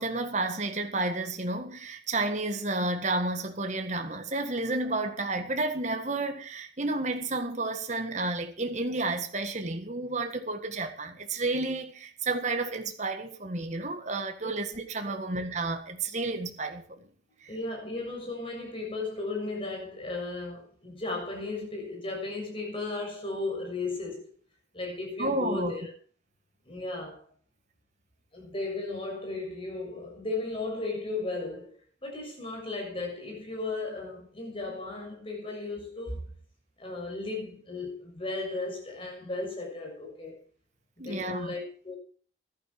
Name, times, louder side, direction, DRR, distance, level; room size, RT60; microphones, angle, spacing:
voice 1, 0.0-17.0 25.2-25.8 41.0-41.5, right 2 dB, 40° right, 1.7 m, -31 dB
voice 2, 17.5-24.3 24.7-25.8 26.7-27.2 28.3-31.7 32.0-36.3 36.8-40.4 41.0-42.0, left 3 dB, 30° left, 6.8 m, -35 dB
15.0 x 11.5 x 4.6 m
head